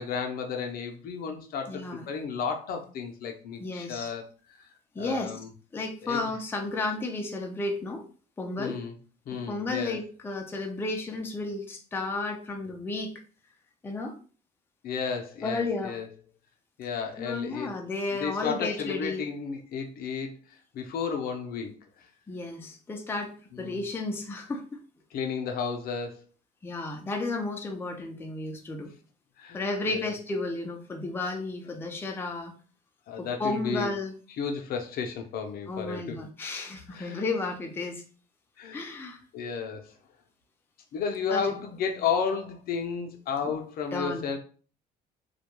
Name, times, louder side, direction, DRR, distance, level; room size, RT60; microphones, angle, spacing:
voice 1, 0.0-4.2 4.5-4.7 4.9-5.5 6.0-6.3 8.6-8.9 9.3-10.0 14.8-16.1 16.8-17.8 18.2-21.7 22.0-22.1 23.5-23.8 25.1-26.2 29.4-30.1 33.1-33.9 34.4-36.2 36.9-37.2 38.6-38.9 39.3-39.9 40.9-44.4, left 6 dB, 60° left, 4 dB, 0.5 m, -33 dB
voice 2, 1.7-2.1 3.6-4.1 4.9-5.3 5.7-8.0 8.4-8.8 9.3-13.2 13.8-14.2 15.4-16.0 17.2-19.2 22.3-24.8 26.6-28.9 29.5-32.5 33.2-34.1 35.7-38.0 38.7-39.2 41.3-41.6 43.4-43.5 43.9-44.4, left 3 dB, 15° left, 2 dB, 0.4 m, -33 dB
2.3 x 2.2 x 2.9 m, 0.39 s
cardioid pair, 110°, 17 cm